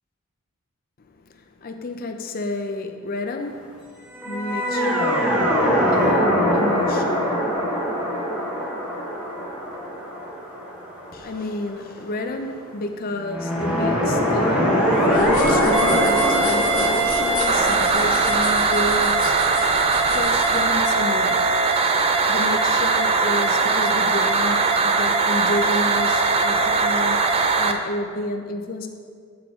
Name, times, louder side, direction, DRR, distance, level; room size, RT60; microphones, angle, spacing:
voice 1, 1.6-3.7 4.3-5.4 5.9-7.4 11.1-19.5 19.8-21.6 22.3-27.2 27.6-28.9, left 2 dB, 40° left, 5 dB, 0.5 m, -30 dB
sound 1, 4.1-11.4 13.2-21.0, equal, 5° right, 1.0 m, -23 dB
sound 2, 15.0-20.7, left 3 dB, 70° left, 1.2 m, -33 dB
sound 3, 15.7-27.7, right 4 dB, 25° right, 0.3 m, -20 dB
8.2 x 4.9 x 3.6 m, 2.1 s
head